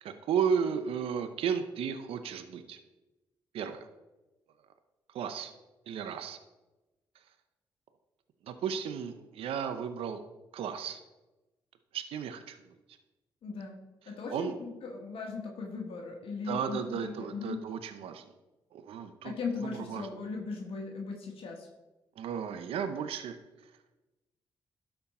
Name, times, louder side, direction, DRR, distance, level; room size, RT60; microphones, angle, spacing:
voice 1, 0.0-2.8 3.5-3.9 5.1-5.5 5.9-6.4 8.4-10.2 10.5-11.0 11.9-12.6 14.3-14.5 16.4-18.3 18.7-20.1 22.2-23.4, right 7 dB, 80° right, 9 dB, 0.7 m, -34 dB
voice 2, 13.4-13.8 14.1-17.6 19.2-21.7, left 4 dB, 75° left, 1 dB, 1.4 m, -38 dB
12.0 x 4.5 x 4.3 m, 1.1 s
supercardioid pair, 60°, 10 cm